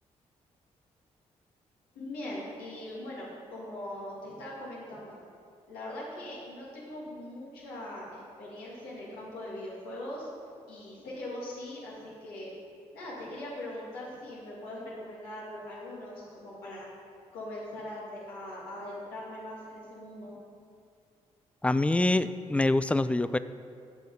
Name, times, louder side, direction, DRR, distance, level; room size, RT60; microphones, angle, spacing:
voice 1, 1.9-5.2 5.7-10.3 10.7-12.5 12.9-16.9 17.3-20.3, left 1 dB, 80° left, -6 dB, 2.0 m, -41 dB
voice 2, 21.6-23.4, left 2 dB, 10° left, 14 dB, 0.3 m, -25 dB
7.4 x 5.6 x 5.4 m, 2.3 s
hypercardioid pair, 45°, 15 cm